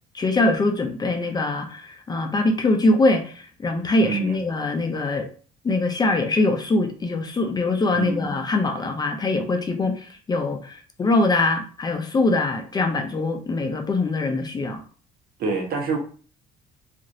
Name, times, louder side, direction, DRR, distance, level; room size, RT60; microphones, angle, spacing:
voice 1, 0.1-5.3 5.6-14.8, left 2 dB, 25° left, 0.4 m, -23 dB
voice 2, 4.0-4.4 7.9-8.4 15.4-16.0, right 4 dB, 65° right, 1.0 m, -26 dB
3.0 x 2.5 x 2.6 m
cardioid pair, 110°, 17 cm